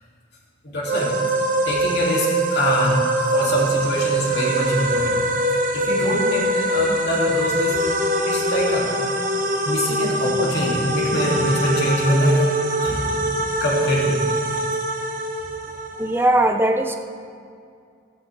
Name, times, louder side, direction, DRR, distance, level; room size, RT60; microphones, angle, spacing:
voice 1, 0.6-1.1 1.6-5.2 5.7-7.8 8.3-8.9 9.6-12.5 12.8-13.1 13.6-14.2, equal, 55° left, -4 dB, 3.3 m, -23 dB
sound 1, 0.9-16.2, right 1 dB, 40° right, 1.1 m, -23 dB
voice 2, 16.0-16.9, right 1 dB, 10° right, 5 dB, 0.5 m, -19 dB
17.0 x 13.5 x 3.7 m, 2.3 s
head